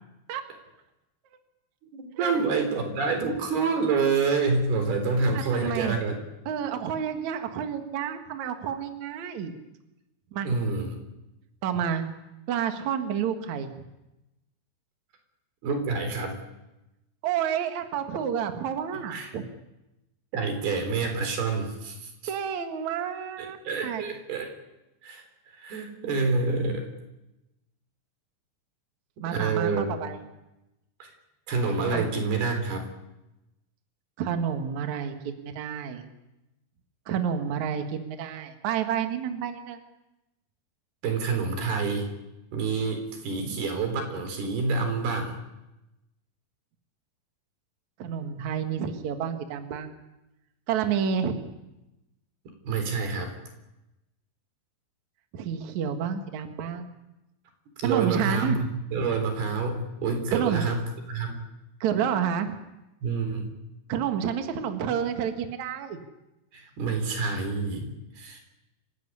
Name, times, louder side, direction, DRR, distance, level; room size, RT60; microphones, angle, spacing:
voice 1, 1.9-6.2 10.4-11.0 15.6-16.4 19.1-19.3 20.3-22.1 23.4-24.5 25.0-25.2 25.5-26.9 29.2-29.9 31.0-31.1 31.5-32.9 41.0-42.1 42.5-45.4 52.6-53.3 57.8-60.8 61.1-61.4 63.0-63.5 66.5-67.9 68.2-68.4, right 4 dB, 85° right, 5 dB, 5.9 m, -27 dB
voice 2, 5.3-6.0 6.5-9.5 10.3-10.6 11.6-12.0 12.5-13.7 17.2-19.4 22.3-23.6 23.8-24.0 29.2-30.2 31.9-32.0 34.2-36.0 37.1-39.8 43.4-43.6 48.0-49.9 50.7-51.5 55.3-56.9 57.8-58.6 60.3-60.7 61.8-62.5 63.9-66.0, right 8 dB, 55° right, 6 dB, 2.7 m, -29 dB
28.0 x 15.5 x 9.8 m, 0.98 s
omnidirectional pair, 4.4 m